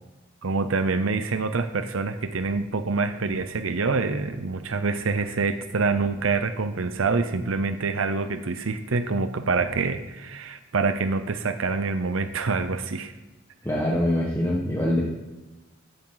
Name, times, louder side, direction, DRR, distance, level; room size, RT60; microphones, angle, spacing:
voice 1, 0.4-13.1, right 4 dB, 75° right, 9 dB, 0.7 m, -26 dB
voice 2, 13.6-15.0, left 1 dB, 15° left, -4 dB, 1.5 m, -24 dB
14.5 x 9.0 x 4.0 m, 1.1 s
head